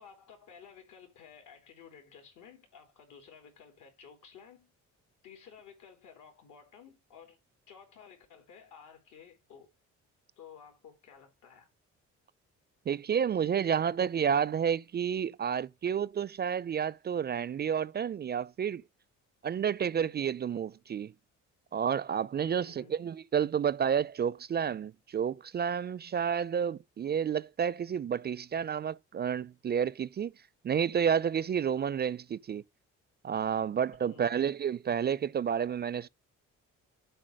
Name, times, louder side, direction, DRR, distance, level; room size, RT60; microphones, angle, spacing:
voice 1, 0.0-4.7 5.2-7.4 7.7-9.7 10.4-11.7 22.4-23.0 34.0-34.3, left 7 dB, 85° left, 3.5 m, -54 dB
voice 2, 12.9-18.8 19.4-21.1 21.7-30.3 30.6-32.6 33.2-36.1, right 8 dB, 35° right, 0.4 m, -30 dB
7.8 x 4.1 x 6.4 m
cardioid pair, 90°, 30 cm